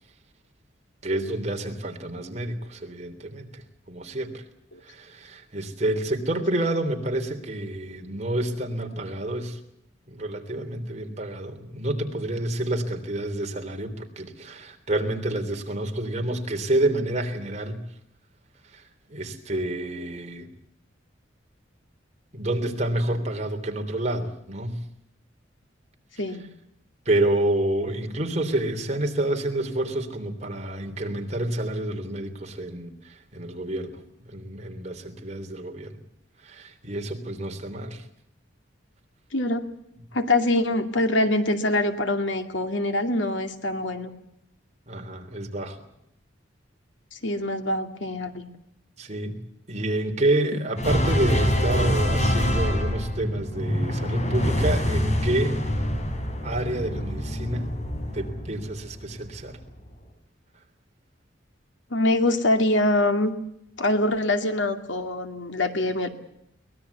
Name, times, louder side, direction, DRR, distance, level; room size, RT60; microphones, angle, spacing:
voice 1, 1.0-4.4 4.8-9.6 10.1-17.8 18.7-20.5 22.3-24.8 27.0-34.0 34.3-36.0 36.4-38.0 44.9-45.8 49.0-49.4 49.7-55.6 56.4-57.7 58.1-59.6, right 1 dB, 35° right, 4 dB, 3.3 m, -28 dB
voice 2, 39.3-39.7 40.1-44.1 47.1-48.5 61.9-63.3 63.8-66.1, left 1 dB, 75° left, 7 dB, 2.4 m, -24 dB
sound 1, 50.8-59.3, equal, 40° left, 4.9 m, -25 dB
23.5 x 20.0 x 8.3 m, 0.77 s
head